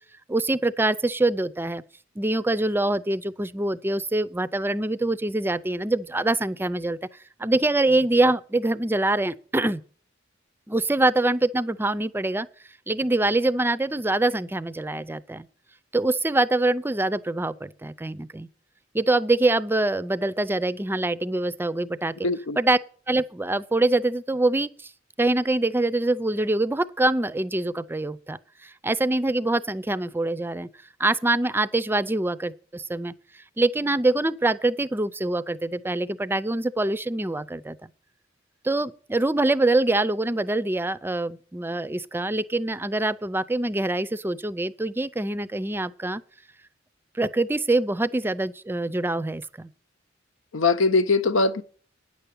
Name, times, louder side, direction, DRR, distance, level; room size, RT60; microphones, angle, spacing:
voice 1, 0.3-1.8 2.2-7.0 7.4-9.8 10.7-12.5 12.9-15.5 15.9-18.5 18.9-22.1 22.6-22.8 23.1-24.9 25.2-30.7 31.0-33.1 33.6-37.8 38.6-46.2 47.1-49.7, right 2 dB, 10° right, 0.4 m, -24 dB
voice 2, 22.2-22.6 50.5-51.6, left 3 dB, 90° left, 0.9 m, -21 dB
9.6 x 6.9 x 8.5 m
head